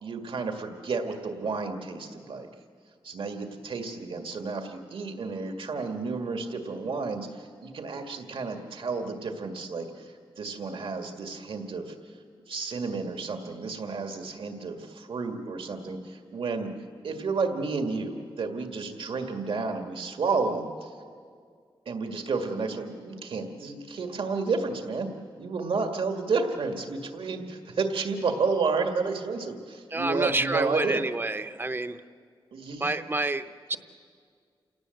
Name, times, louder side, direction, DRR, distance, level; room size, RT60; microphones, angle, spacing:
voice 1, 0.0-2.5 3.0-11.9 12.5-16.7 17.0-20.9 21.9-25.1 25.4-31.1 32.5-32.9, right 4 dB, 75° right, 5 dB, 2.0 m, -31 dB
voice 2, 29.9-32.0 32.8-33.8, right 2 dB, 25° right, 10 dB, 0.7 m, -29 dB
28.5 x 18.0 x 7.9 m, 2.1 s
wide cardioid pair, 125°, 9 cm